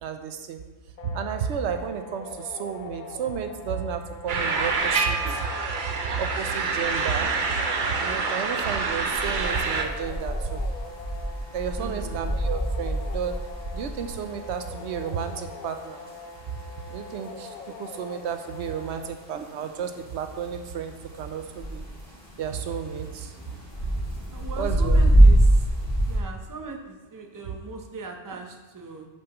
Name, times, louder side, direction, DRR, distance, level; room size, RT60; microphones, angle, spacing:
voice 1, 0.0-0.6 1.0-5.5 5.9-7.4 8.0-10.6 11.5-13.4 13.7-16.0 16.9-21.8 22.4-23.4 24.6-25.0 27.5-27.6 28.3-28.4, right 7 dB, 80° right, 7 dB, 0.9 m, -32 dB
sound 1, 1.0-19.0, left 4 dB, 50° left, 0.7 m, -43 dB
sound 2, 4.3-9.8, right 4 dB, 50° right, 0.8 m, -27 dB
sound 3, 9.1-26.2, right 1 dB, 5° left, 2.4 m, -25 dB
voice 2, 11.8-12.3 24.3-25.7 26.1-29.1, right 3 dB, 20° right, 2 dB, 0.7 m, -40 dB
8.7 x 6.7 x 3.0 m, 1.2 s
omnidirectional pair, 1.2 m